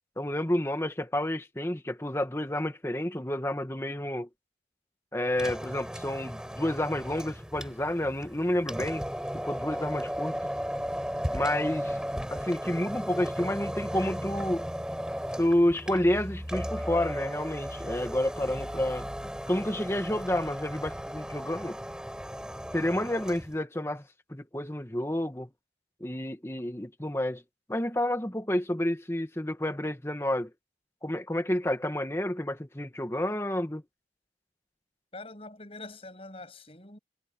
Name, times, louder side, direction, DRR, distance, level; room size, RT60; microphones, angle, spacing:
voice 1, 0.2-4.3 5.1-9.0 9.3-10.3 11.3-12.0 12.3-14.6 15.4-19.1 19.5-21.8 22.7-24.0 24.3-25.5 26.0-27.4 27.7-30.5 31.0-33.8, left 1 dB, 15° left, 1.5 m, -30 dB
sound 1, 5.3-23.5, equal, 5° right, 4.4 m, -36 dB
voice 2, 35.1-37.0, left 2 dB, 35° left, 6.6 m, -44 dB
head